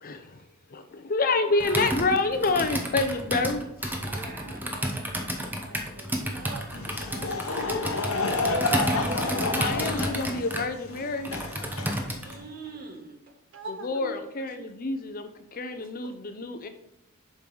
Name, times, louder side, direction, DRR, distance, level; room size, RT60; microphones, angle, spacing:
voice 1, 0.0-0.4 0.7-4.0 9.3-11.3 13.8-16.7, left 3 dB, 45° left, 8 dB, 0.6 m, -28 dB
voice 2, 1.5-2.0 4.0-5.3 5.8-8.7 13.5-14.3 14.6-14.7 16.0-16.2, right 3 dB, 60° right, 7 dB, 0.7 m, -45 dB
Computer keyboard, 1.6-12.4, equal, 10° right, 0.8 m, -31 dB
voice 3, 4.0-6.4 12.0-13.3, right 3 dB, 45° right, 3 dB, 1.3 m, -46 dB
Laughter / Crowd, 6.7-12.5, left 3 dB, 75° left, 0.9 m, -30 dB
7.5 x 5.4 x 3.9 m, 0.85 s
head